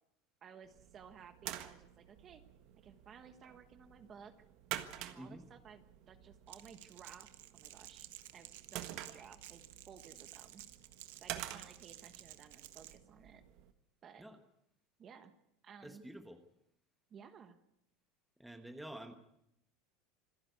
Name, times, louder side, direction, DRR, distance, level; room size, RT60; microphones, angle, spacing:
voice 1, 0.4-2.4 2.8-4.3 5.0-10.6 11.2-13.4 14.0-14.3 15.0-15.3 15.6-16.0 17.1-17.6, right 7 dB, 25° right, 10 dB, 1.3 m, -56 dB
sound 1, 0.6-13.7, right 13 dB, 45° right, 1.5 m, -49 dB
voice 2, 5.2-5.5 14.2-14.4 15.8-16.4 18.4-19.2, right 1 dB, ahead, 7 dB, 1.2 m, -49 dB
Crackle, 6.5-13.0, right 15 dB, 80° right, 1.3 m, -54 dB
26.5 x 11.0 x 9.5 m, 0.79 s
supercardioid pair, 170°, 0 cm